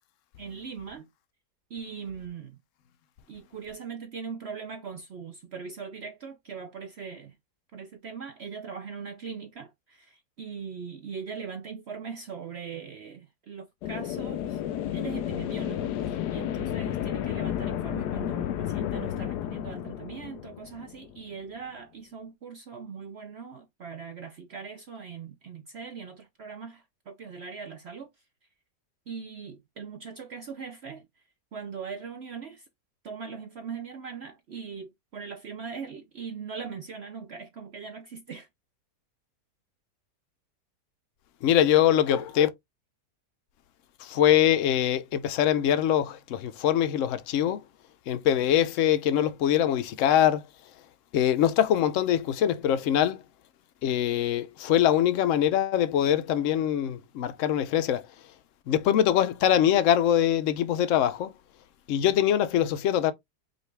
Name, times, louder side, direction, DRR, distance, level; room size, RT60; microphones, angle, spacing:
voice 1, 0.4-1.1 1.7-2.6 3.3-7.3 7.7-14.6 14.9-28.1 29.1-31.1 31.5-32.6 33.0-38.5, right 6 dB, 60° right, 0.7 m, -40 dB
sound 1, 13.8-21.4, left 11 dB, 85° left, 1.2 m, -32 dB
voice 2, 41.4-42.5 44.0-47.6 48.1-50.4 51.1-53.2 53.8-58.1 58.7-61.3 61.9-63.1, left 10 dB, 65° left, 0.8 m, -23 dB
5.2 x 2.4 x 3.2 m
omnidirectional pair, 1.7 m